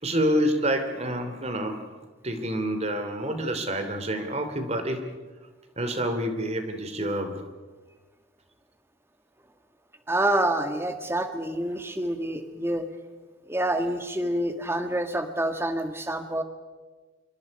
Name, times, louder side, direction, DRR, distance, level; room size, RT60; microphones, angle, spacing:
voice 1, 0.0-1.9 2.2-5.1 5.8-7.4, equal, 35° right, 7 dB, 2.8 m, -28 dB
voice 2, 10.1-12.9 13.5-16.4, right 1 dB, 15° right, 7 dB, 1.7 m, -27 dB
27.5 x 24.0 x 5.4 m, 1.4 s
head